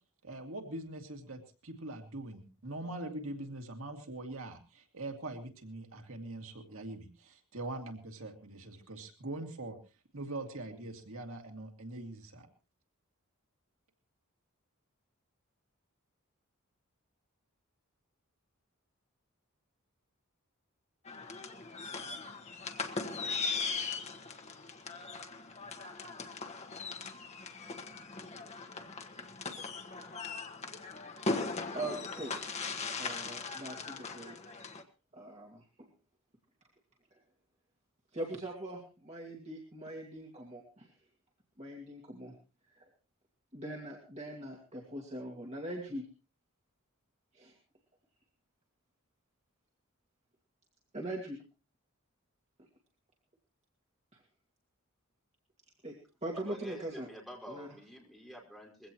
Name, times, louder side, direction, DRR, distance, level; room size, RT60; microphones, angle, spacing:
voice 1, 0.2-9.8 10.1-12.5, right 2 dB, 75° right, 4 dB, 2.4 m, -43 dB
sound 1, 21.0-34.8, left 4 dB, 30° left, 1.4 m, -39 dB
voice 2, 31.7-32.4 33.0-34.4 35.1-35.9 38.1-40.9 41.6-42.3 42.7-42.9 43.5-46.0 47.3-47.5 50.9-51.4 54.1-54.2 55.8-56.0 56.2-57.1 57.5-57.7, right 1 dB, 30° right, -1 dB, 2.4 m, -41 dB
voice 3, 56.4-58.9, equal, ahead, -1 dB, 5.2 m, -48 dB
22.0 x 16.5 x 3.1 m, 0.33 s
head